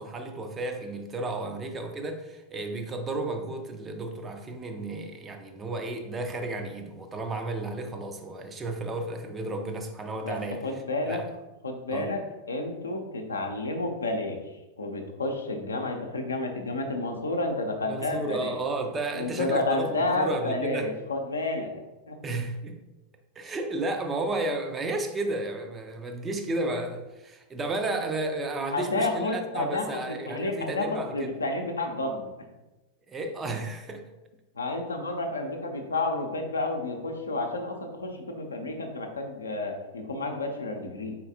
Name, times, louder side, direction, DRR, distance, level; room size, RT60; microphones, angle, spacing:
voice 1, 0.0-10.6 11.1-11.3 11.9-12.1 17.9-20.9 22.2-22.8 23.4-31.3 33.1-34.0, right 2 dB, 20° right, 0.5 m, -33 dB
voice 2, 10.6-11.2 11.6-12.2 12.5-14.4 14.8-18.6 19.1-21.7 22.1-22.2 28.7-32.2 34.5-41.2, left 2 dB, 75° left, 0.6 m, -30 dB
4.3 x 3.9 x 2.7 m
figure-of-eight pair, 90°, 0 cm